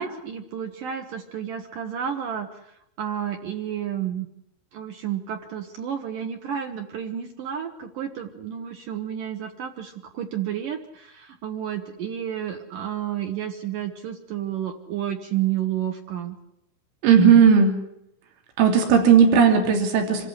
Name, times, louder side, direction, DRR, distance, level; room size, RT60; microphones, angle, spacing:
voice 1, 0.0-2.5 3.0-4.3 4.7-16.4, right 10 dB, 65° right, 6 dB, 2.2 m, -31 dB
voice 2, 17.0-17.8 18.6-20.3, right 7 dB, 90° right, 4 dB, 5.5 m, -16 dB
26.5 x 14.5 x 9.8 m, 0.80 s
omnidirectional pair, 5.5 m